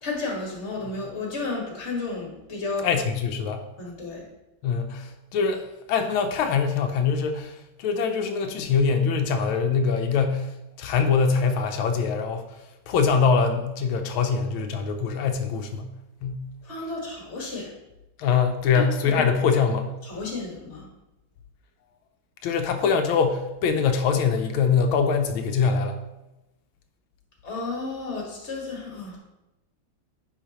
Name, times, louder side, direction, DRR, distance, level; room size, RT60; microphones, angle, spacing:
voice 1, 0.0-3.0 3.8-4.2 16.6-17.7 18.7-19.2 20.0-20.9 27.4-29.2, left 3 dB, 35° left, -1 dB, 1.8 m, -32 dB
voice 2, 2.8-3.6 4.6-5.6 5.9-10.5 10.8-12.4 12.9-15.9 16.2-16.4 18.2-19.9 22.4-26.0, left 5 dB, 90° left, 6 dB, 1.5 m, -23 dB
9.9 x 4.8 x 3.0 m, 0.96 s
omnidirectional pair, 2.2 m